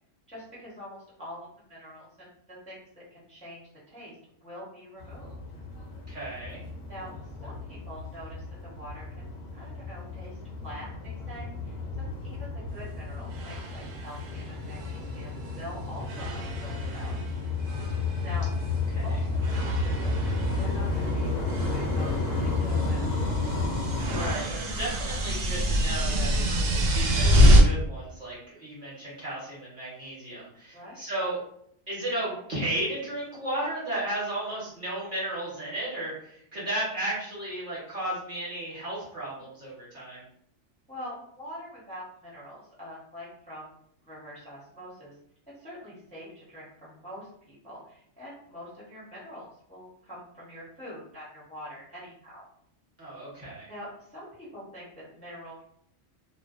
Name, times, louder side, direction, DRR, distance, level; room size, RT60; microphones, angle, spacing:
voice 1, 0.3-4.2 4.4-5.3 6.8-7.1 7.4-9.0 9.5-17.1 18.2-18.5 18.9-23.4 30.7-31.0 40.9-43.7 44.0-45.2 45.6-52.5 53.7-55.6, equal, 5° left, -8 dB, 0.6 m, -45 dB
sound 1, 5.0-24.3, left 3 dB, 40° left, 0.7 m, -32 dB
voice 2, 6.1-6.6 18.9-19.2 24.1-31.4 31.9-40.2 53.0-53.7, right 1 dB, 45° right, -7 dB, 1.1 m, -34 dB
sound 2, 12.7-12.8 13.3-15.7 16.0-17.3 17.6-18.8 19.4-27.6, equal, 80° right, 1.0 m, -26 dB
2.5 x 2.1 x 2.3 m, 0.68 s
omnidirectional pair, 1.3 m